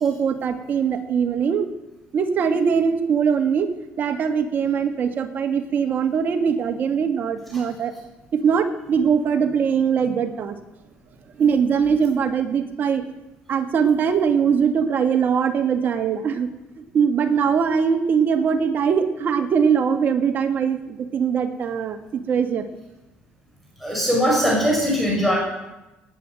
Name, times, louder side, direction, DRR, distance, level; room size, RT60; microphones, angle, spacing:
voice 1, 0.0-1.7 2.1-3.7 4.0-7.9 8.3-10.6 11.4-13.0 13.5-16.5 16.8-22.7, right 6 dB, 50° right, 6 dB, 2.0 m, -21 dB
voice 2, 23.8-25.4, equal, ahead, -3 dB, 5.5 m, -20 dB
19.0 x 9.1 x 7.9 m, 0.99 s
cardioid pair, 115°, 4 cm